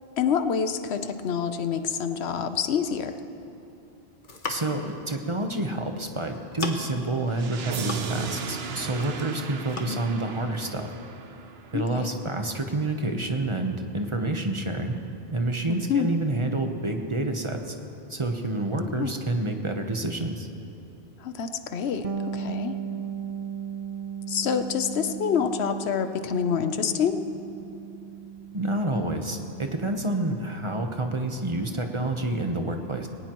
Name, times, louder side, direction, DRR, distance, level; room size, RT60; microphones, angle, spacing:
voice 1, 0.2-3.2 9.9-10.1 11.7-12.1 15.7-16.1 18.8-19.1 21.2-22.8 24.3-27.2, left 7 dB, 85° left, 9 dB, 1.0 m, -27 dB
sound 1, 4.1-4.9 5.9-6.1 6.3-7.0 7.5-8.4 8.7-9.3 9.7-9.9, left 3 dB, 50° left, 1.3 m, -36 dB
voice 2, 4.5-10.9 11.7-14.9 15.3-17.7 18.1-20.5 28.5-33.1, right 2 dB, 30° right, 4 dB, 1.0 m, -28 dB
sound 2, 7.3-12.3, right 5 dB, 75° right, 1.0 m, -36 dB
Bass guitar, 22.0-31.6, right 7 dB, 45° right, 0.5 m, -37 dB
20.5 x 18.0 x 3.0 m, 3.0 s
omnidirectional pair, 1.1 m